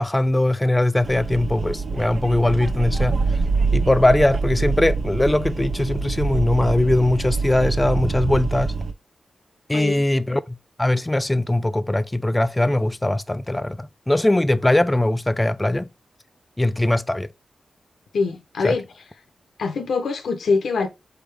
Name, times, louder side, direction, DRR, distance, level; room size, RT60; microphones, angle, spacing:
voice 1, 0.0-3.4 3.7-8.7 9.7-15.9 16.6-17.3 18.6-18.8, left 1 dB, 20° left, 0.4 m, -21 dB
sound 1, 1.0-8.9, right 4 dB, 70° right, 0.6 m, -25 dB
voice 2, 9.7-10.0 18.1-18.8 19.6-20.9, left 4 dB, 85° left, 0.6 m, -23 dB
4.1 x 3.5 x 3.3 m
cardioid pair, 45°, 0 cm